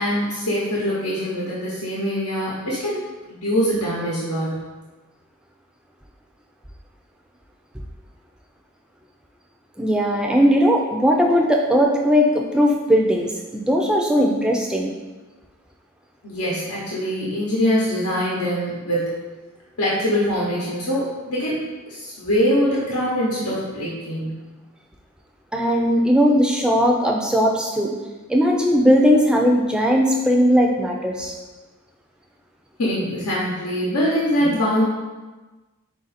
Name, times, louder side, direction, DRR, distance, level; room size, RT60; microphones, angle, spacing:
voice 1, 0.0-3.0 3.3-4.5 16.2-19.1 19.8-24.4 32.8-34.9, equal, 90° left, -6 dB, 0.9 m, -23 dB
voice 2, 9.8-14.9 25.5-27.9 28.3-31.3, equal, 5° right, 0 dB, 0.3 m, -18 dB
4.7 x 2.5 x 4.1 m, 1.2 s
head